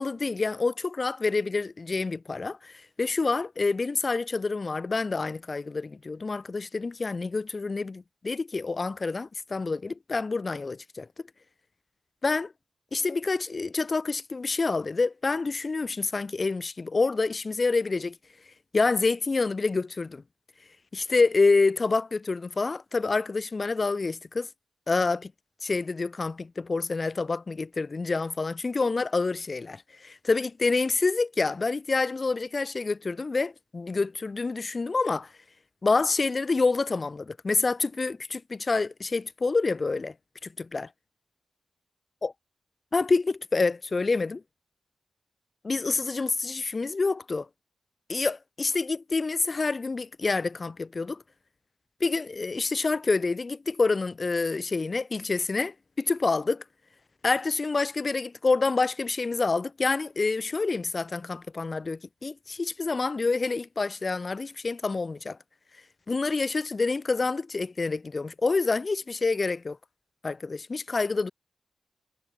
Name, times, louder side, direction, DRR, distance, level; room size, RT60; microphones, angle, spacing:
voice 1, 0.0-11.1 12.2-12.5 12.9-18.2 18.7-20.2 20.9-24.5 24.9-25.3 25.6-35.3 35.8-40.1 40.4-40.9 42.2-42.3 42.9-44.4 45.6-47.5 48.1-51.2 52.0-56.6 57.2-65.4 66.1-69.8 70.2-71.3, left 3 dB, 35° left, 5.1 m, -27 dB
wide cardioid pair, 120°, 0 cm